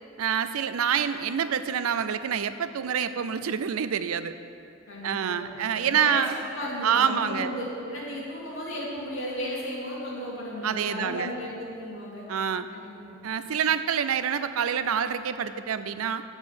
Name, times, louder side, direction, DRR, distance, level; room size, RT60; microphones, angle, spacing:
voice 1, 0.2-4.3 5.0-6.3 6.8-7.5 10.6-11.3 12.3-12.7 13.2-16.2, right 8 dB, 80° right, 12 dB, 0.4 m, -27 dB
voice 2, 4.9-12.3 12.7-13.2, equal, 65° left, -6 dB, 2.6 m, -35 dB
7.1 x 6.7 x 7.9 m, 2.5 s
head